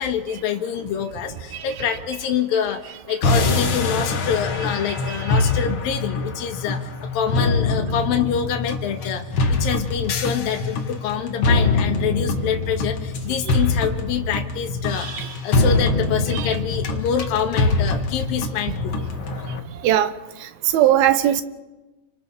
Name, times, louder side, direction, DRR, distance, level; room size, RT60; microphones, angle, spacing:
voice 1, 0.0-15.1 15.4-19.0, left 8 dB, 70° left, 4 dB, 3.2 m, -26 dB
sound 1, 3.2-19.6, left 3 dB, 45° left, 1.8 m, -23 dB
voice 2, 5.1-5.4 15.0-15.3 16.4-16.5 19.8-20.1 20.7-21.4, right 11 dB, 80° right, 11 dB, 2.9 m, -19 dB
30.0 x 25.5 x 4.3 m, 1.1 s
omnidirectional pair, 4.3 m